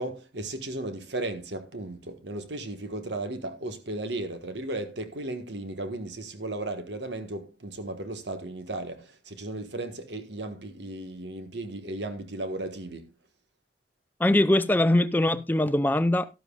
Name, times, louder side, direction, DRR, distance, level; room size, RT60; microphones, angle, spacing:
voice 1, 0.0-13.1, right 2 dB, 80° right, 1.5 m, -35 dB
voice 2, 14.2-16.3, left 1 dB, 10° left, 0.5 m, -22 dB
12.5 x 12.5 x 2.4 m
head